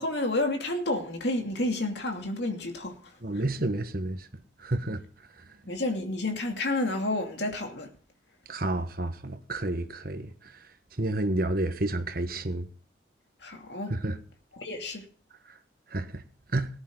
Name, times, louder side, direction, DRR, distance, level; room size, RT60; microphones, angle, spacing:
voice 1, 0.0-3.0 5.6-7.9 13.4-13.9 14.6-15.1, left 2 dB, 65° left, 2.7 m, -30 dB
voice 2, 3.2-4.3 4.6-5.0 8.5-10.3 11.0-12.7 13.9-14.2 15.9-16.2 16.5-16.7, right 2 dB, 50° right, 1.3 m, -30 dB
19.0 x 10.5 x 3.9 m
head